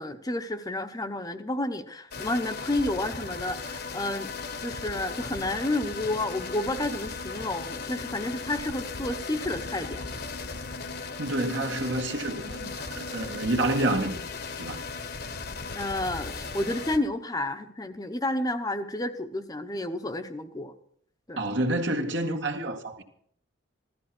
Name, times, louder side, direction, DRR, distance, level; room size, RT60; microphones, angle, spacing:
voice 1, 0.0-4.3 4.6-10.0 15.7-20.7 21.3-21.4, left 1 dB, 20° left, 0.9 m, -30 dB
sound 1, 2.1-17.0, left 4 dB, 50° left, 1.2 m, -37 dB
voice 2, 11.2-14.2 14.6-14.8 21.4-23.0, right 1 dB, 65° right, 1.9 m, -28 dB
16.0 x 13.5 x 6.0 m
head